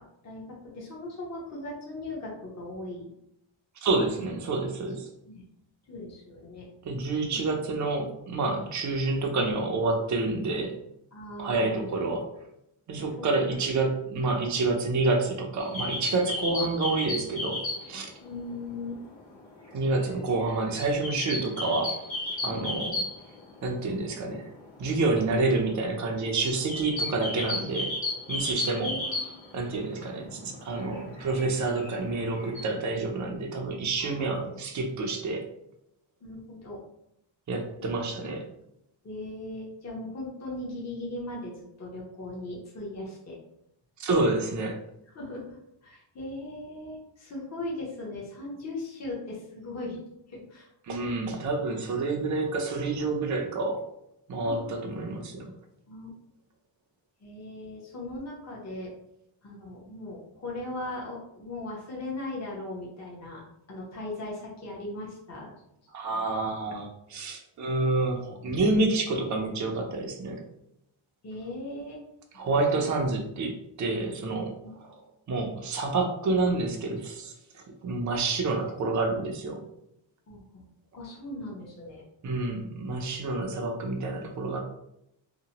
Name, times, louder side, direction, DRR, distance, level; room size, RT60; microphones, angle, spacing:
voice 1, 0.0-3.1 5.2-5.4 5.9-6.7 7.3-7.6 11.1-11.9 13.0-13.6 16.6-16.7 18.2-19.0 22.5-22.7 28.8-29.3 30.8-31.0 34.0-34.5 36.2-36.8 37.8-38.2 39.0-43.4 45.1-45.6 45.8-50.0 50.3-50.7 51.0-51.1 54.3-54.7 55.9-56.1 57.2-58.9 59.4-63.4 63.7-65.5 66.1-66.2 71.2-72.0 72.3-72.9 74.6-74.7 80.3-80.7 80.9-82.0, left 2 dB, 35° left, -4 dB, 0.9 m, -39 dB
voice 2, 3.8-5.1 6.8-10.8 11.4-12.3 12.9-17.6 17.9-18.1 19.7-21.9 22.4-22.9 23.6-24.5 24.8-27.9 28.3-29.0 29.5-35.4 37.5-38.4 44.0-44.8 50.8-53.9 54.3-55.5 65.9-70.4 72.3-75.0 75.3-79.6 82.2-84.6, right 3 dB, 40° right, 2 dB, 0.5 m, -28 dB
sound 1, 15.6-18.1 18.3-18.4 18.7-23.6 23.9-24.0 24.2-24.5 25.0-30.0 30.4-32.7, left 2 dB, 65° left, 1.2 m, -34 dB
2.9 x 2.1 x 2.8 m, 0.79 s
wide cardioid pair, 115°, 48 cm